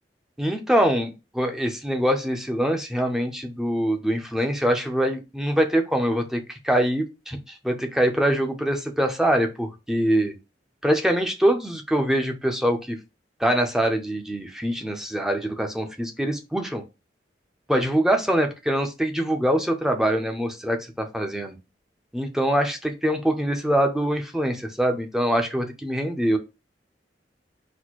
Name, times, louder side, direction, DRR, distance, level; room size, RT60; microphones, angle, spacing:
voice 1, 0.4-10.3 10.8-13.0 13.4-16.8 17.7-21.6 22.1-26.4, right 1 dB, 5° right, 4 dB, 0.6 m, -24 dB
4.2 x 2.1 x 4.5 m, 0.26 s
head